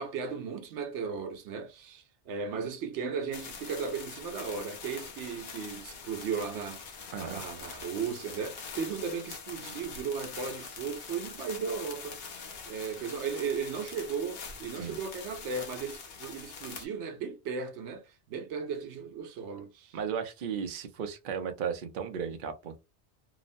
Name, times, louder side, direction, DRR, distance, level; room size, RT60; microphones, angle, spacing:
voice 1, 0.0-20.0, right 6 dB, 85° right, 0.9 m, -36 dB
sound 1, 3.3-16.8, left 5 dB, 65° left, 0.9 m, -44 dB
voice 2, 7.1-7.4 14.8-15.0 19.9-22.8, right 7 dB, 55° right, 0.7 m, -35 dB
3.0 x 2.0 x 2.5 m
omnidirectional pair, 1.1 m